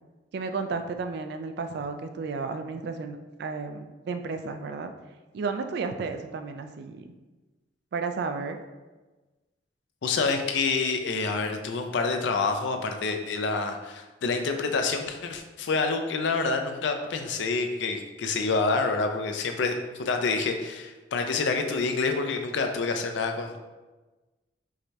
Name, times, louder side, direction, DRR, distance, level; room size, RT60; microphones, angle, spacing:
voice 1, 0.3-4.9 5.3-7.1 7.9-8.6, right 4 dB, 65° right, 7 dB, 0.3 m, -33 dB
voice 2, 10.0-23.6, left 4 dB, 75° left, 5 dB, 0.4 m, -27 dB
4.7 x 2.2 x 2.7 m, 1.2 s
head